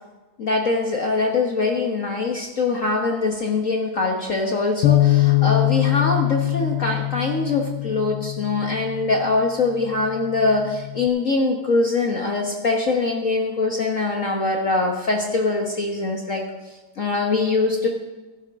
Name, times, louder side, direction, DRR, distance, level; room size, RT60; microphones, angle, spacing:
voice 1, 0.4-16.4 17.0-17.9, left 3 dB, 45° left, 1 dB, 1.3 m, -23 dB
Bass guitar, 4.8-9.2 9.9-11.1, left 18 dB, 75° left, 0.9 m, -22 dB
16.5 x 11.0 x 3.6 m, 1.2 s
omnidirectional pair, 2.4 m